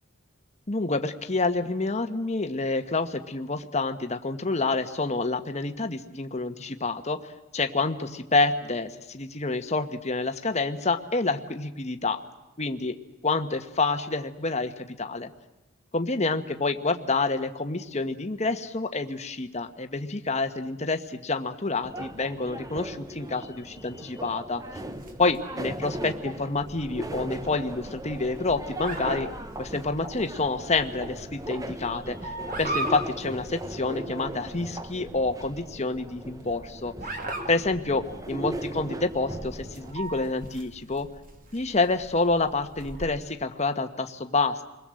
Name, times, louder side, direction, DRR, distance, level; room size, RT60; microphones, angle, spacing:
voice 1, 0.7-7.2 7.5-12.2 12.6-13.0 13.2-15.3 15.9-24.8 25.2-29.3 29.6-32.3 32.6-36.9 37.5-41.1 41.5-44.6, left 3 dB, 30° left, 7 dB, 1.3 m, -28 dB
sound 1, 21.8-39.9, right 1 dB, 15° right, 1.0 m, -38 dB
sound 2, 24.7-43.1, right 1 dB, 40° right, 2.7 m, -40 dB
29.5 x 21.5 x 7.7 m, 1.0 s
head